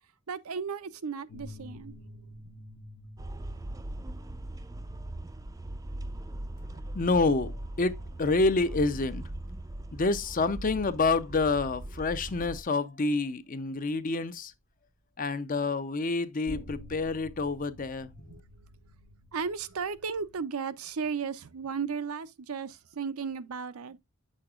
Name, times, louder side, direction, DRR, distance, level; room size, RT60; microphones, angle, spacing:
voice 1, 0.3-2.0 18.3-18.4 19.3-24.0, right 5 dB, 80° right, 0.6 m, -35 dB
sound 1, 1.3-10.6 11.6-11.7 16.5-20.4, equal, 75° left, 1.0 m, -50 dB
sound 2, 3.2-12.6, right 1 dB, 15° right, 0.4 m, -40 dB
voice 2, 6.9-7.5 7.8-9.2 9.9-14.5 15.2-18.1, left 3 dB, 40° left, 0.6 m, -28 dB
8.7 x 6.4 x 2.4 m
head